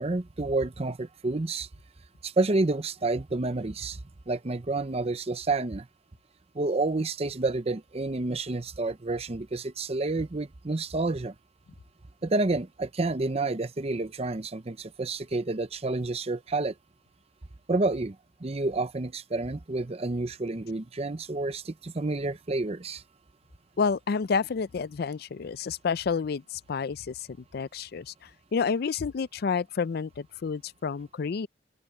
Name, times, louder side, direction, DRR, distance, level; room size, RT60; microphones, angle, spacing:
voice 1, 0.0-1.7 2.2-4.0 4.3-5.9 6.5-11.3 12.2-16.7 17.7-18.2 18.4-23.0, right 2 dB, 35° right, 0.7 m, -29 dB
voice 2, 23.8-31.5, left 5 dB, 60° left, 0.4 m, -30 dB
open air
head